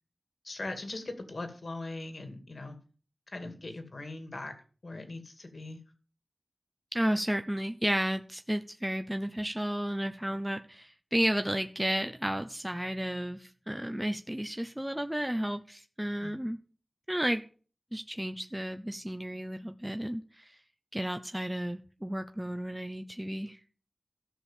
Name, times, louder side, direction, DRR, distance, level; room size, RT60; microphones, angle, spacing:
voice 1, 0.4-2.8 3.3-4.5 4.8-5.8 16.2-16.3, left 2 dB, 70° left, 6 dB, 2.5 m, -40 dB
voice 2, 6.9-16.6 17.1-17.4 17.9-20.6 20.9-23.6, equal, 10° right, 7 dB, 0.8 m, -32 dB
14.0 x 6.4 x 7.4 m, 0.39 s
wide cardioid pair, 70°, 0 cm